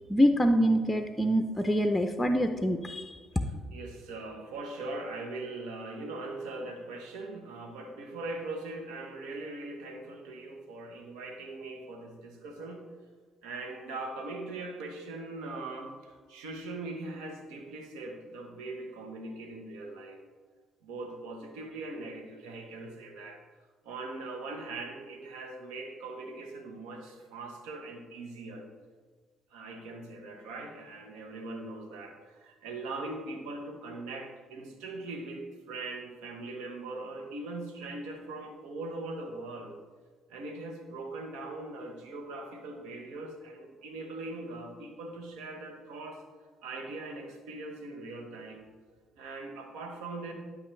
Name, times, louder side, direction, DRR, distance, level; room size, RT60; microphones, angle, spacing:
voice 1, 0.1-3.2, equal, 15° left, 6 dB, 0.6 m, -25 dB
voice 2, 3.7-12.8 13.4-20.2 20.8-23.4 23.8-28.6 29.5-39.7 40.3-46.2 46.6-48.7 49.2-50.3, right 2 dB, 80° right, 4 dB, 1.2 m, -41 dB
11.5 x 5.6 x 3.3 m, 1.5 s
hypercardioid pair, 55°, 0 cm